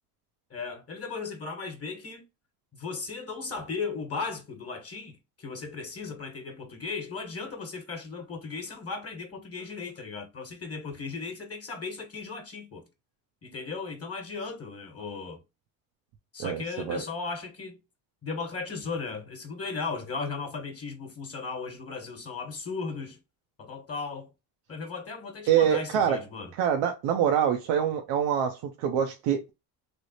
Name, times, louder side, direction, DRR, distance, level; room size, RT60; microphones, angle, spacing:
voice 1, 0.5-2.2 2.7-12.9 13.4-15.4 16.3-17.8 18.2-23.2 23.6-24.3 24.7-26.5, left 4 dB, 35° left, 1.2 m, -36 dB
voice 2, 16.4-17.0 25.5-26.2 26.6-29.5, right 8 dB, 75° right, 0.7 m, -25 dB
3.3 x 2.0 x 4.0 m
supercardioid pair, 85°, 43 cm